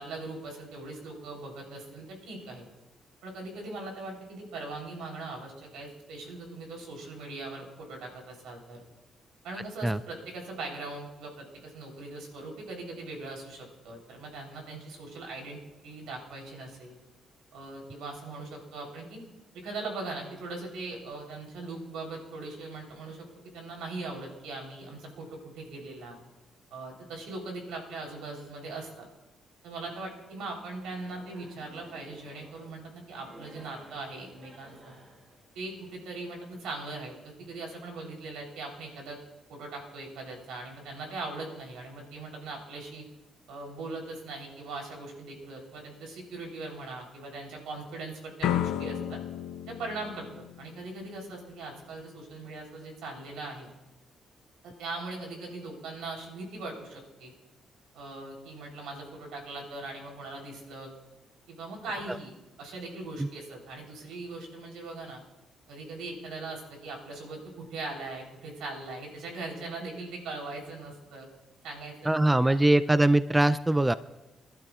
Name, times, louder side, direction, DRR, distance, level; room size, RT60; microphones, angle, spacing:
voice 1, 0.0-2.6 3.2-8.8 9.4-16.9 17.5-19.2 19.5-26.2 26.7-29.1 29.6-35.0 35.5-39.2 39.5-43.1 43.5-49.2 49.7-53.7 54.6-57.3 57.9-60.9 61.5-65.2 65.7-71.3 71.6-72.6, right 3 dB, 90° right, 1 dB, 3.6 m, -40 dB
sound 1, 30.9-36.0, right 1 dB, 40° right, 5.4 m, -53 dB
sound 2, 48.4-51.3, left 11 dB, 90° left, 0.5 m, -33 dB
voice 2, 72.1-73.9, right 1 dB, 10° right, 14 dB, 0.4 m, -22 dB
25.5 x 12.0 x 2.4 m, 1.0 s
cardioid pair, 90°, 0 cm